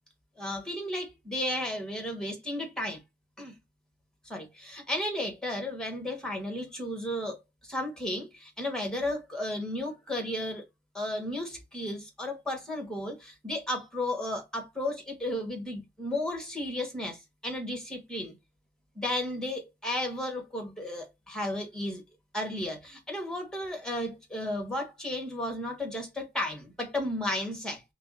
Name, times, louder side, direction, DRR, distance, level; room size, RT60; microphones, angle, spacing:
voice 1, 0.4-3.0 3.4-3.5 4.2-7.4 7.6-10.6 10.9-18.3 18.9-22.0 22.3-27.8, left 1 dB, 5° left, 1.2 m, -34 dB
5.8 x 2.0 x 2.5 m
wide cardioid pair, 145°, 19 cm